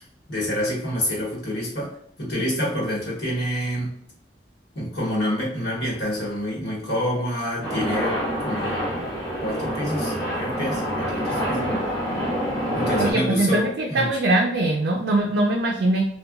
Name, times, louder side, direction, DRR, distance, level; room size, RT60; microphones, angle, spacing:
voice 1, 0.3-1.9 2.2-3.9 4.7-8.9 9.4-11.7 12.7-14.1, equal, 70° left, -5 dB, 1.1 m, -27 dB
sound 1, 7.6-13.1, equal, 25° left, 1.2 m, -26 dB
voice 2, 13.0-16.1, right 2 dB, 75° right, 0 dB, 0.4 m, -22 dB
2.8 x 2.2 x 2.3 m, 0.69 s
head